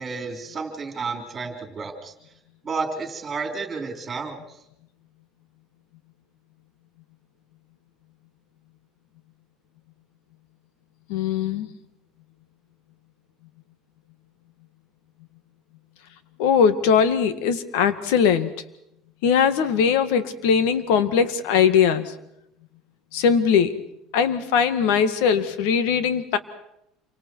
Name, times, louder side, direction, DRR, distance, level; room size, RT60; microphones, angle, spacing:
voice 1, 0.0-2.1 2.6-4.4, right 4 dB, 20° right, 4 dB, 4.0 m, -31 dB
voice 2, 11.1-11.7 16.4-18.5 19.2-22.1 23.1-23.8 24.1-26.4, left 7 dB, 85° left, 11 dB, 1.8 m, -20 dB
28.0 x 25.0 x 4.7 m, 0.80 s
cardioid pair, 150°, 0 cm